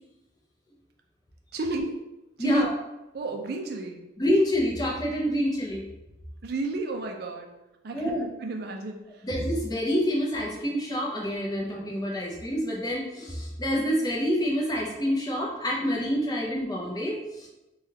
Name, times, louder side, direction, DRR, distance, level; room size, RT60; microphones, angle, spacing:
voice 1, 1.5-2.0 2.4-2.6 3.1-4.0 6.4-7.5 7.8-9.3, right 2 dB, 50° right, 2 dB, 0.4 m, -32 dB
voice 2, 2.4-2.7 4.2-5.8 7.9-8.2 9.2-17.5, equal, 20° left, -3 dB, 0.6 m, -27 dB
3.4 x 2.3 x 2.8 m, 0.98 s
head